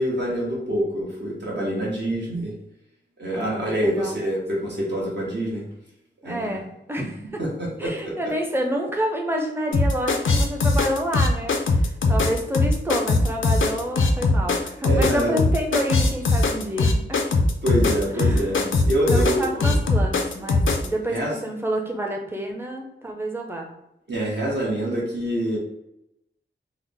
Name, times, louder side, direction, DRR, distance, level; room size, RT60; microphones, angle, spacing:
voice 1, 0.0-2.5 3.2-5.7 6.2-6.6 7.0-7.1 7.4-8.3 14.8-15.4 17.6-19.7 21.1-21.4 24.1-25.6, equal, 60° right, -4 dB, 1.1 m, -26 dB
voice 2, 3.3-4.2 6.2-7.4 7.8-17.2 18.1-18.5 19.1-23.7, equal, 10° right, 1 dB, 0.6 m, -28 dB
sound 1, 9.7-20.9, left 2 dB, 80° left, 0.4 m, -20 dB
3.5 x 2.0 x 3.5 m, 0.85 s
wide cardioid pair, 100°, 20 cm